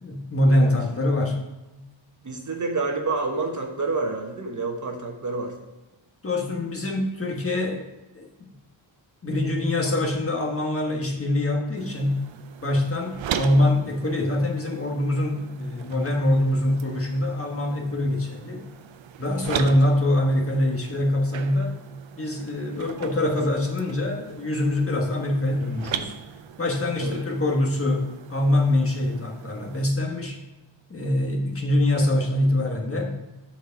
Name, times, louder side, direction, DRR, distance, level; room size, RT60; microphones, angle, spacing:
voice 1, 0.0-1.4 6.2-7.9 8.1-8.3 9.2-12.2 12.6-18.6 19.2-21.8 22.2-26.1 26.6-30.4 30.9-33.1, left 1 dB, 30° left, 0 dB, 1.4 m, -24 dB
voice 2, 2.2-5.5 19.5-19.7 27.0-27.2, right 3 dB, 40° right, 2 dB, 1.1 m, -28 dB
sound 1, 11.8-29.9, right 9 dB, 75° right, 0.6 m, -39 dB
8.1 x 4.5 x 5.8 m, 1.0 s
wide cardioid pair, 140°, 47 cm